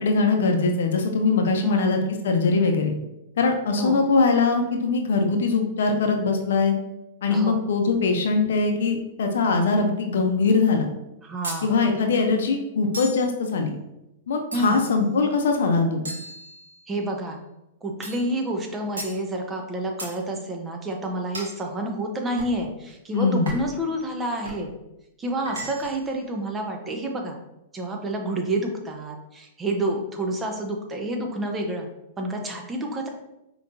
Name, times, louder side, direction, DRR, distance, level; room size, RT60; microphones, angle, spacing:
voice 1, 0.0-3.0 3.4-6.8 7.2-10.9 11.6-13.7 14.3-16.1 23.1-23.5, left 4 dB, 75° left, 4 dB, 0.6 m, -22 dB
voice 2, 1.6-2.1 3.8-4.0 7.3-7.6 11.2-11.7 14.5-14.8 16.9-17.4 17.8-24.7 25.2-27.4 27.7-31.9 32.2-33.1, right 1 dB, 20° right, 2 dB, 0.7 m, -29 dB
sound 1, 11.4-11.7 12.9-13.3 14.5-15.0 16.1-17.0 18.0-18.3 19.0-19.2 20.0-20.2 21.3-21.6 22.4-22.6 23.5-23.8 24.4-24.7 25.5-26.1, right 1 dB, 90° right, 0.9 m, -36 dB
5.0 x 3.0 x 2.6 m, 0.91 s
hypercardioid pair, 115°, 0 cm